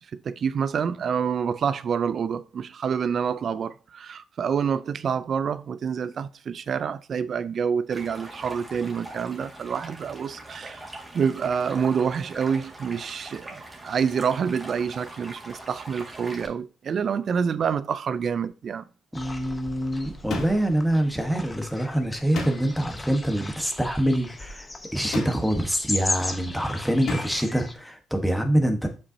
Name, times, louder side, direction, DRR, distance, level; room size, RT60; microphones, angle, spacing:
voice 1, 0.1-10.9 11.1-18.8, right 6 dB, 55° right, 0.5 m, -27 dB
Stream, 7.9-16.5, right 2 dB, 20° right, 2.0 m, -42 dB
sound 1, 19.1-27.7, left 2 dB, 20° left, 0.9 m, -36 dB
voice 2, 19.1-28.9, right 1 dB, ahead, 1.2 m, -25 dB
sound 2, 20.3-20.9 22.3-22.9 25.1-25.7 27.1-27.5, left 3 dB, 70° left, 2.4 m, -33 dB
7.1 x 5.4 x 2.7 m
cardioid pair, 90°, 0 cm